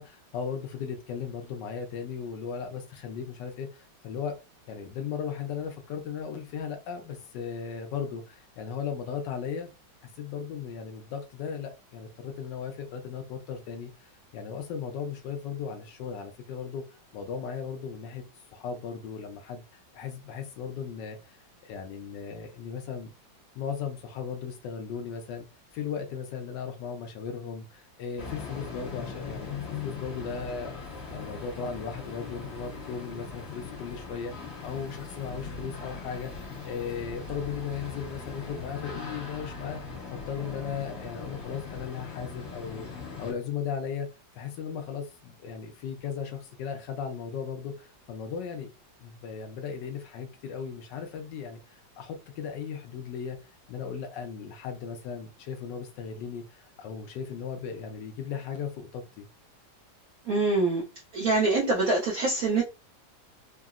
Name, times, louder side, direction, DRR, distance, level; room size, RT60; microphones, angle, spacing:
voice 1, 0.0-4.4 4.7-9.7 10.2-16.8 17.1-18.2 18.5-23.1 23.5-25.4 25.7-29.5 29.8-30.7 31.1-39.8 40.1-44.1 44.4-48.7 49.0-53.4 53.7-59.3, left 7 dB, 75° left, 1.2 m, -36 dB
sound 1, 28.2-43.3, left 4 dB, 40° left, 1.2 m, -40 dB
voice 2, 60.3-60.8 61.1-62.6, right 3 dB, 65° right, 0.9 m, -24 dB
3.7 x 2.0 x 2.4 m
omnidirectional pair, 2.0 m